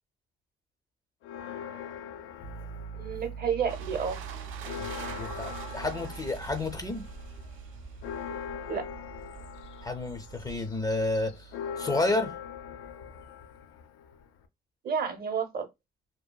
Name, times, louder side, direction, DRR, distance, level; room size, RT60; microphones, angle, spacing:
Church bell, 1.2-3.6 4.0-4.1 4.4-14.5, left 8 dB, 90° left, 0.4 m, -42 dB
Piano, 2.4-13.2, right 7 dB, 75° left, 1.1 m, -45 dB
voice 1, 2.9-4.2 8.7-8.8 14.8-15.7, right 6 dB, 50° right, 0.7 m, -30 dB
sound 1, 3.7-10.6, right 5 dB, 90° right, 0.4 m, -45 dB
voice 2, 4.8-7.1 9.8-11.5 11.8-12.3, left 2 dB, 20° left, 0.4 m, -31 dB
2.7 x 2.3 x 2.2 m
cardioid pair, 90°, 20 cm